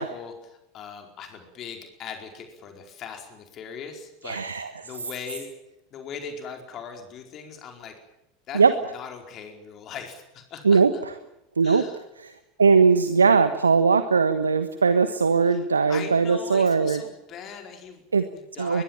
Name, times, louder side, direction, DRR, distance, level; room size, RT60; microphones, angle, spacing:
voice 1, 0.0-5.5 5.9-8.0 8.5-8.6 8.9-11.0 11.6-12.0 15.4-18.0 18.3-18.8, left 6 dB, 40° left, 4 dB, 4.7 m, -40 dB
voice 2, 4.2-4.7 8.5-8.7 10.6-10.9 11.6-11.8 12.2-12.3 12.6-17.0 18.1-18.2 18.6-18.8, right 5 dB, 80° right, 11 dB, 1.3 m, -19 dB
23.0 x 22.0 x 7.4 m, 0.87 s
figure-of-eight pair, 80°, 0 cm